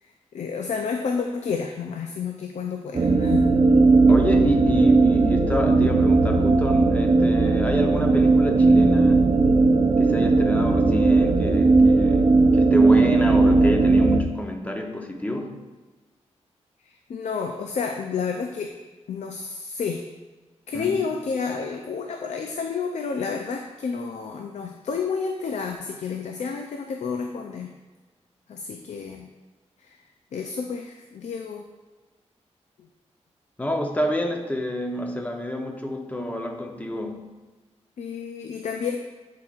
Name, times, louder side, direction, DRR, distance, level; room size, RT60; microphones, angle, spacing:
voice 1, 0.0-3.5 16.9-18.7 19.1-20.0 20.7-27.7 28.5-29.3 29.8-30.0 30.3-31.6 32.8-32.9 38.0-39.0, left 5 dB, 80° left, 4 dB, 0.5 m, -30 dB
sound 1, 2.9-14.2, right 3 dB, 50° right, 0.7 m, -18 dB
voice 2, 4.1-9.4 10.0-15.6 20.7-21.0 33.6-37.3, left 1 dB, 15° left, 3 dB, 0.8 m, -28 dB
10.5 x 4.7 x 2.5 m, 1.2 s
wide cardioid pair, 90°, 12 cm